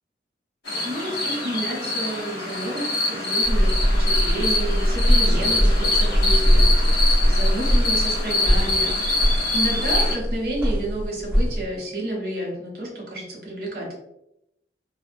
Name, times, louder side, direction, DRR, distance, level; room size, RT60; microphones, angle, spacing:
sound 1, 0.7-10.2, left 2 dB, 65° left, 1.1 m, -25 dB
voice 1, 0.8-9.0 9.5-13.9, right 1 dB, 55° right, -3 dB, 0.8 m, -30 dB
sound 2, 3.4-11.6, equal, 10° right, 0.7 m, -21 dB
2.4 x 2.1 x 2.5 m, 0.82 s
head